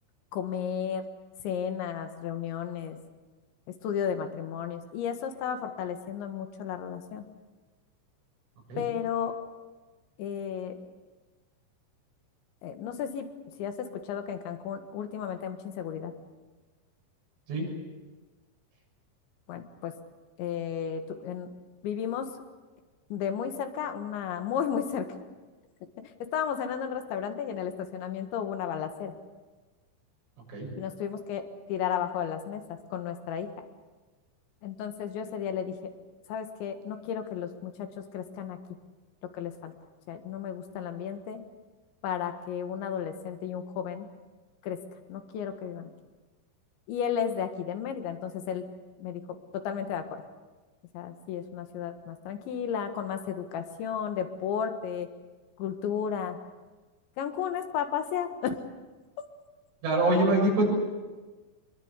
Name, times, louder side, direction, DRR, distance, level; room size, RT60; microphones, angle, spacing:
voice 1, 0.3-1.0 1.4-3.0 3.7-7.3 8.8-9.3 10.2-10.8 12.6-13.3 13.6-16.1 19.5-19.9 20.4-21.5 21.8-22.3 23.1-25.1 26.2-29.1 30.8-33.5 34.6-35.9 36.3-38.6 39.3-39.7 40.1-41.4 42.0-44.1 44.6-44.8 45.1-45.9 46.9-48.6 49.0-50.2 50.9-55.1 55.6-56.4 57.2-58.6, left 8 dB, 75° left, 7 dB, 3.9 m, -33 dB
voice 2, 59.8-60.7, right 1 dB, 90° right, -1 dB, 9.4 m, -24 dB
25.0 x 22.5 x 8.3 m, 1.3 s
omnidirectional pair, 5.4 m